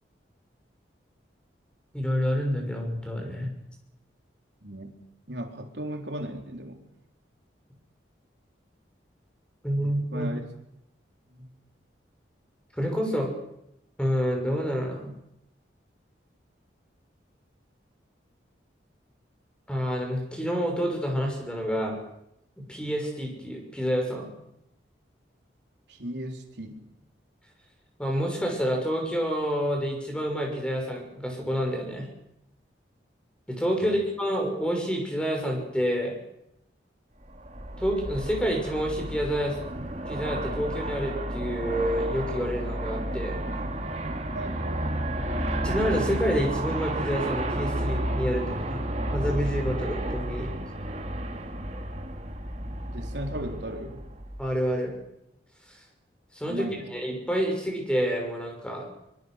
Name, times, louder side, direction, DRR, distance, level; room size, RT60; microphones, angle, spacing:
voice 1, 1.9-3.5 9.6-10.3 12.8-13.3 14.0-15.1 19.7-22.0 22.6-24.3 28.0-32.1 33.5-36.2 37.8-43.4 45.6-48.8 49.1-50.5 54.4-55.0 55.7-55.8 56.3-58.8, equal, 5° left, 1 dB, 6.3 m, -28 dB
voice 2, 4.6-5.0 5.3-6.8 9.8-10.5 11.3-11.5 25.9-26.9 33.8-34.0 44.3-45.0 52.9-54.1 56.5-56.9, right 1 dB, 70° right, 4 dB, 3.7 m, -36 dB
Aircraft, 37.3-54.6, right 1 dB, 35° right, 2.7 m, -31 dB
24.0 x 23.0 x 6.6 m, 0.81 s
head